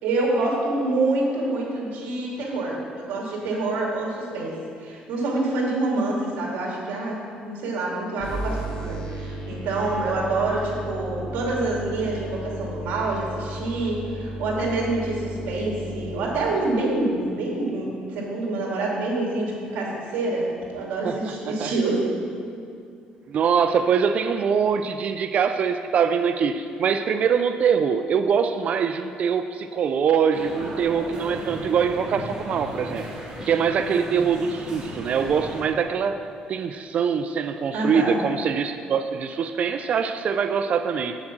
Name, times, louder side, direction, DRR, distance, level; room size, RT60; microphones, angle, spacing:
voice 1, 0.0-7.2 7.4-22.0 37.7-38.2, right 2 dB, 80° right, -3 dB, 2.6 m, -26 dB
sound 1, 8.2-16.2, equal, 45° left, 2.4 m, -34 dB
voice 2, 21.0-21.7 23.3-33.1 33.5-41.2, right 6 dB, 50° right, 9 dB, 0.4 m, -23 dB
sound 2, 30.3-35.6, equal, 25° right, 2.2 m, -36 dB
7.8 x 7.2 x 6.1 m, 2.4 s
cardioid pair, 130°, 3 cm